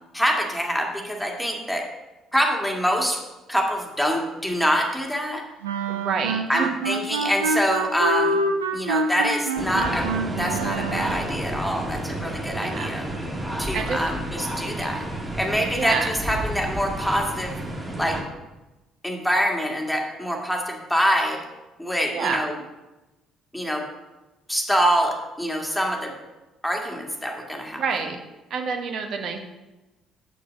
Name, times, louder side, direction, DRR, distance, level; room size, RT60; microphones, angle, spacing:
voice 1, 0.1-1.8 2.3-3.2 3.5-5.4 6.5-8.4 8.7-13.1 13.6-15.0 15.4-17.5 18.0-18.2 19.0-21.4 21.8-22.6 23.5-23.8 24.5-26.1 26.6-27.8, equal, ahead, 0 dB, 2.1 m, -25 dB
sound 1, 5.6-11.3, right 3 dB, 80° right, 0.7 m, -26 dB
voice 2, 5.9-6.7 12.6-13.0 13.7-14.0 15.8-16.1 22.1-22.4 27.7-28.2 28.5-29.4, right 5 dB, 55° right, 5 dB, 1.2 m, -27 dB
sound 2, 9.6-18.2, right 1 dB, 20° right, 2.5 m, -31 dB
7.7 x 6.6 x 5.3 m, 1.1 s
figure-of-eight pair, 50°, 0 cm